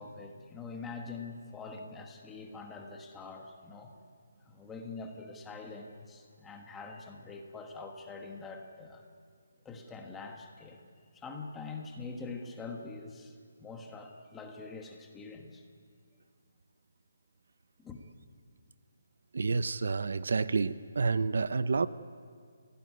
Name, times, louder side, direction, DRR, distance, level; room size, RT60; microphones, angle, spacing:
voice 1, 0.0-3.9 4.4-9.0 9.6-10.8 11.1-15.6 17.8-18.0, left 4 dB, 5° left, 2 dB, 1.4 m, -44 dB
voice 2, 19.3-21.9, right 4 dB, 60° right, 14 dB, 0.8 m, -29 dB
29.0 x 17.5 x 9.7 m, 2.2 s
hypercardioid pair, 175°, 0 cm